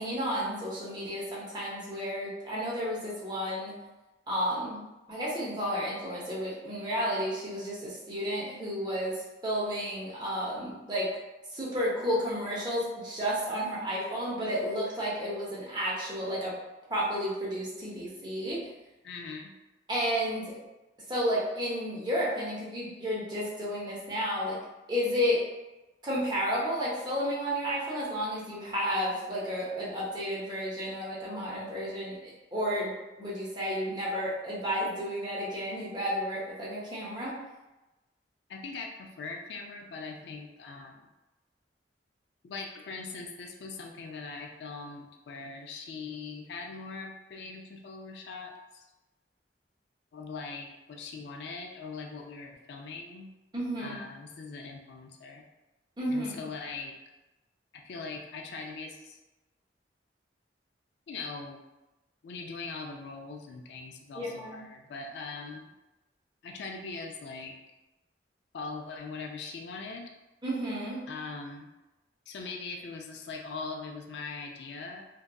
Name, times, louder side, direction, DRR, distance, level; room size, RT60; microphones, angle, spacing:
voice 1, 0.0-3.8 4.3-11.1 11.5-16.5 16.9-18.6 19.9-20.6 21.1-24.6 24.9-25.4 26.0-37.4 53.5-54.0 56.0-56.3 64.1-64.6 70.4-71.1, equal, 25° right, -6 dB, 0.7 m, -32 dB
voice 2, 19.0-19.5 38.5-41.1 42.4-48.8 50.1-53.3 53.8-55.5 56.1-56.9 57.7-59.2 61.1-61.6 62.2-65.7 66.4-67.5 68.5-70.1 71.1-71.7 72.3-75.1, left 4 dB, 70° left, 2 dB, 0.3 m, -41 dB
2.6 x 2.2 x 2.2 m, 1.0 s
head